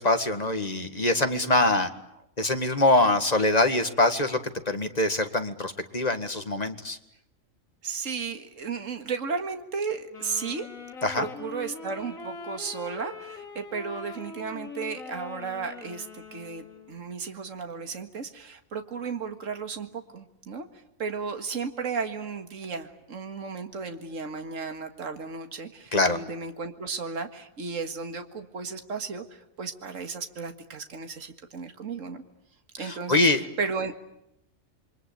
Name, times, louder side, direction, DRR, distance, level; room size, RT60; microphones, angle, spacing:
voice 1, 0.0-1.9 2.4-4.4 4.7-7.0 11.0-11.3 25.9-26.2 32.8-33.4, left 2 dB, 30° left, 7 dB, 1.9 m, -24 dB
voice 2, 7.8-10.7 11.2-20.7 21.0-32.2 32.8-33.9, right 5 dB, 70° right, 7 dB, 2.2 m, -34 dB
Wind instrument woodwind instrument, 10.1-17.0, left 4 dB, 80° left, 2.9 m, -42 dB
28.0 x 24.0 x 8.8 m, 0.81 s
omnidirectional pair, 1.4 m